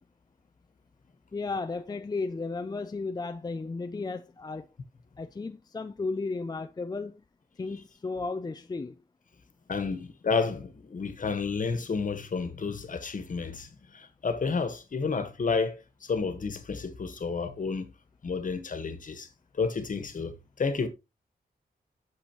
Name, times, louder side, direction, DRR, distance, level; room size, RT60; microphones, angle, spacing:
voice 1, 1.3-4.7 5.2-7.2 7.6-9.0, left 3 dB, 25° left, 0.5 m, -34 dB
voice 2, 9.7-17.9 18.2-19.3 19.5-20.9, left 4 dB, 55° left, 1.4 m, -31 dB
8.7 x 6.8 x 3.0 m
wide cardioid pair, 155°, 16 cm